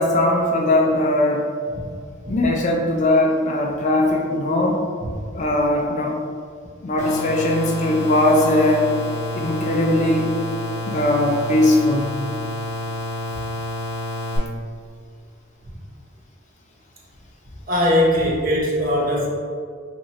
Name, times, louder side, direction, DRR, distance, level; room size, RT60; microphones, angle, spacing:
voice 1, 0.0-1.4 2.3-4.8 5.3-6.1 6.8-8.9 9.3-10.3 10.8-12.2, left 1 dB, 35° left, 0 dB, 0.3 m, -19 dB
sound 1, 7.0-14.4, left 1 dB, 15° left, 0.8 m, -29 dB
voice 2, 17.7-19.3, left 1 dB, 40° right, -4 dB, 0.7 m, -20 dB
3.0 x 2.5 x 4.2 m, 2.1 s
head